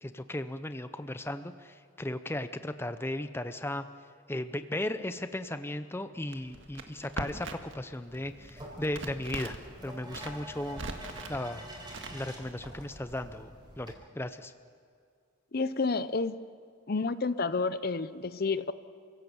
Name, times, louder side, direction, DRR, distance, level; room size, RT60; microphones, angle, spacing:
voice 1, 0.0-3.8 4.3-9.6 9.8-10.8 11.3-11.7 12.1-14.5, left 1 dB, 10° left, 10 dB, 0.6 m, -36 dB
Crackle, 6.3-7.8 8.1-9.7 10.0-11.4 11.9-12.5, right 2 dB, 70° right, 1.7 m, -40 dB
sound 1, 8.1-13.9, equal, 20° right, 4.4 m, -47 dB
voice 2, 15.5-16.4 16.9-18.7, left 4 dB, 50° left, 14 dB, 0.7 m, -30 dB
29.0 x 17.0 x 7.1 m, 2.2 s
head